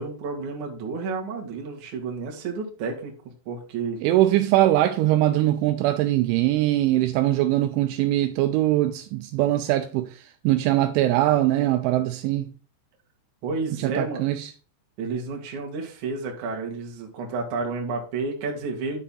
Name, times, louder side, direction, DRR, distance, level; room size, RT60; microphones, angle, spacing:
voice 1, 0.0-4.0 13.4-14.2 15.0-19.0, right 4 dB, 55° right, 2.4 m, -31 dB
voice 2, 4.0-12.5 13.8-14.5, right 14 dB, 85° right, 2.9 m, -22 dB
10.0 x 5.8 x 3.8 m
omnidirectional pair, 5.7 m